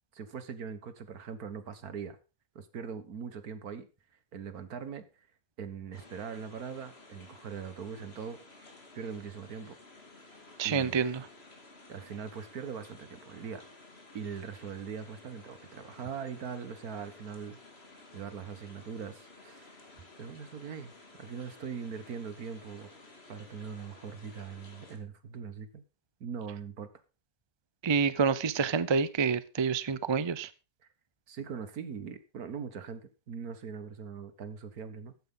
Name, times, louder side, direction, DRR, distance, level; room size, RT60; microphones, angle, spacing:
voice 1, 0.1-2.2 2.6-3.9 4.3-5.0 5.6-9.8 10.6-11.0 11.9-13.7 14.1-17.6 18.1-19.8 20.2-22.9 23.3-25.8 26.2-26.9 31.3-35.1, right 6 dB, 75° right, 11 dB, 1.8 m, -41 dB
sound 1, 5.9-25.0, left 2 dB, 40° left, 2.6 m, -54 dB
voice 2, 10.6-11.2 27.8-30.5, right 5 dB, 40° right, 16 dB, 0.4 m, -28 dB
14.0 x 9.5 x 3.8 m, 0.31 s
omnidirectional pair, 1.6 m